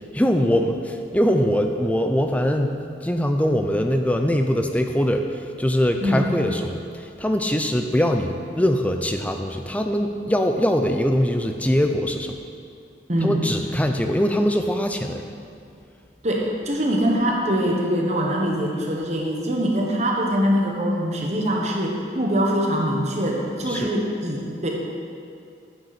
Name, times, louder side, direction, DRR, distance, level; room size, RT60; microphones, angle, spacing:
voice 1, 0.1-2.8 3.0-12.4 13.2-15.2 23.7-23.9, equal, 10° left, 5 dB, 0.5 m, -22 dB
voice 2, 6.0-6.4 13.1-13.5 16.2-24.7, equal, 40° right, -1 dB, 1.2 m, -23 dB
9.6 x 9.4 x 4.2 m, 2.4 s
head